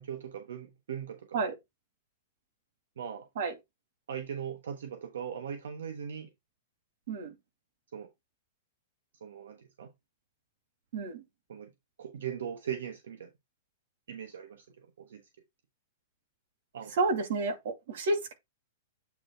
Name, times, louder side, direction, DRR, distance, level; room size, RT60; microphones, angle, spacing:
voice 1, 0.0-1.5 3.0-3.3 4.1-6.3 7.9-8.1 9.2-9.9 11.5-11.7 12.0-13.3 14.1-15.2 16.7-16.9, right 8 dB, 85° right, 1.2 m, -39 dB
voice 2, 10.9-11.2 16.9-18.3, right 3 dB, 65° right, 2.3 m, -30 dB
8.6 x 3.1 x 4.4 m
hypercardioid pair, 155°, 0 cm